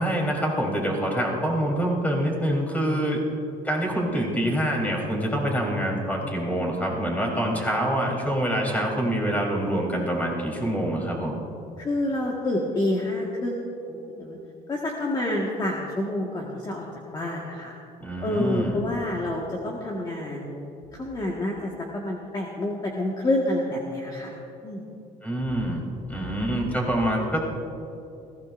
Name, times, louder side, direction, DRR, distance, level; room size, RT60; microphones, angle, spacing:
voice 1, 0.0-3.2 3.6-11.4 18.0-18.8 25.2-27.5, right 1 dB, 10° left, -2 dB, 3.7 m, -26 dB
voice 2, 11.8-14.4 14.7-16.9 17.1-17.7 18.2-20.6 20.9-24.3 24.6-24.8, left 1 dB, 25° left, -2 dB, 1.7 m, -28 dB
20.5 x 16.0 x 2.6 m, 2.8 s
cardioid pair, 105°, 16 cm